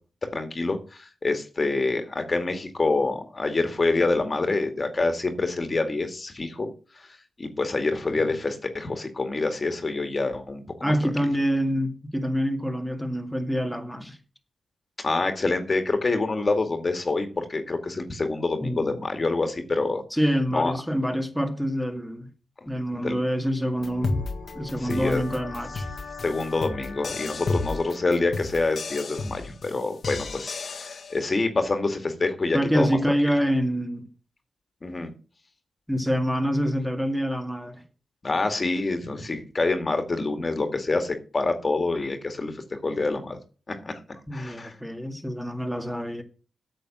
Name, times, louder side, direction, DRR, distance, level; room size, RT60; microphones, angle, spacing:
voice 1, 0.3-10.9 11.2-11.3 15.0-20.0 20.5-20.7 22.6-22.7 22.9-23.2 24.7-25.2 26.2-33.0 34.8-35.1 38.2-43.4 43.7-44.7, left 3 dB, 35° left, 2.2 m, -27 dB
voice 2, 10.8-14.2 18.6-18.9 20.1-22.3 22.7-24.2 24.6-25.9 32.5-34.1 35.9-37.8 44.3-46.2, equal, ahead, 2.2 m, -26 dB
sound 1, 23.8-31.2, left 3 dB, 60° left, 1.6 m, -33 dB
8.9 x 7.0 x 7.6 m
cardioid pair, 70°, 0 cm